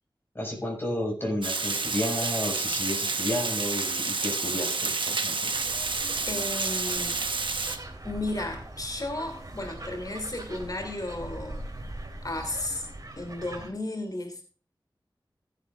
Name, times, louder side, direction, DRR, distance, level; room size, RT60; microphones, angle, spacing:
voice 1, 0.3-5.5, left 1 dB, 25° left, 0 dB, 5.8 m, -32 dB
Water, 1.4-7.8, right 4 dB, 80° right, 1.1 m, -29 dB
sound 1, 5.5-13.7, right 1 dB, 45° right, 3.4 m, -41 dB
voice 2, 6.2-7.2 8.0-11.6 12.2-12.9 13.2-14.4, left 2 dB, 50° left, 4 dB, 3.0 m, -34 dB
15.0 x 10.5 x 2.5 m, 0.40 s
wide cardioid pair, 50°, 8 cm